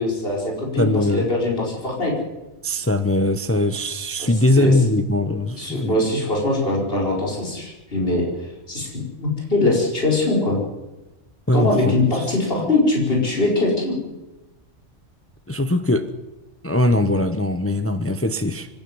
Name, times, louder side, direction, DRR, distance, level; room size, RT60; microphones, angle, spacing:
voice 1, 0.0-2.1 4.2-4.3 4.6-4.7 5.6-10.6 11.5-14.0, left 2 dB, 50° left, -2 dB, 5.3 m, -22 dB
voice 2, 0.8-1.3 2.6-6.0 11.5-11.9 12.6-12.7 15.5-16.1 16.6-18.7, left 1 dB, 10° left, 9 dB, 0.9 m, -21 dB
24.5 x 11.0 x 9.7 m, 1.1 s
omnidirectional pair, 1.3 m